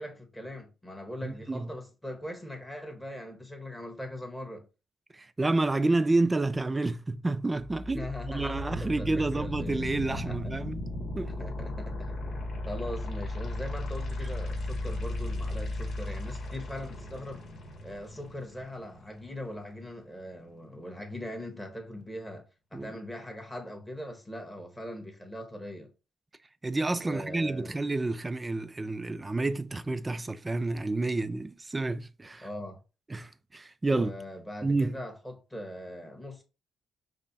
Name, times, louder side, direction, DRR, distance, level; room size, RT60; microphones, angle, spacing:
voice 1, 0.0-4.7 7.9-10.8 11.2-17.4 17.8-25.9 27.0-27.8 32.4-32.8 33.9-36.4, left 1 dB, 5° left, 1.4 m, -41 dB
voice 2, 1.2-1.7 5.1-10.8 11.2-11.3 22.7-23.0 26.6-32.5 33.1-34.1 34.6-34.9, right 2 dB, 20° right, 0.4 m, -29 dB
sound 1, 7.6-19.6, left 1 dB, 55° left, 1.9 m, -36 dB
5.2 x 2.2 x 4.1 m
cardioid pair, 90°, 0 cm